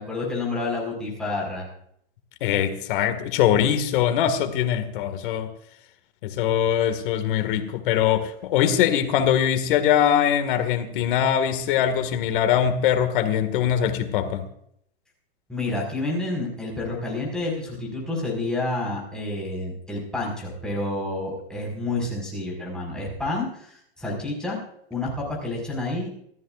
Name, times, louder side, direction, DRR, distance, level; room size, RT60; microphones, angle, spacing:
voice 1, 0.0-1.7 15.5-24.6 24.9-26.1, left 2 dB, ahead, -4 dB, 5.1 m, -29 dB
voice 2, 2.4-5.5 6.2-14.4, left 9 dB, 50° left, 8 dB, 2.0 m, -22 dB
27.5 x 14.0 x 2.5 m, 0.71 s
supercardioid pair, 160°, 32 cm